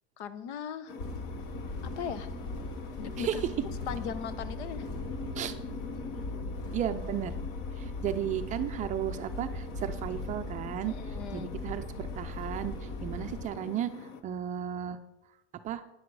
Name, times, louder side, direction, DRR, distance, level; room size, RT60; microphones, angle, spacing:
voice 1, 0.2-1.0 1.8-2.3 3.0-3.5 3.9-4.9 10.8-11.5, left 8 dB, 85° left, 14 dB, 1.0 m, -38 dB
sound 1, 0.9-14.2, left 5 dB, 45° left, 1.0 m, -44 dB
sound 2, 1.0-13.5, left 2 dB, 60° left, 2.7 m, -39 dB
voice 2, 6.7-7.3 7.8-10.9 11.3-12.7 13.0-13.9 14.2-15.0 15.6-15.8, right 10 dB, 25° right, 8 dB, 0.4 m, -34 dB
12.5 x 9.7 x 4.7 m, 0.93 s
supercardioid pair, 160°, 33 cm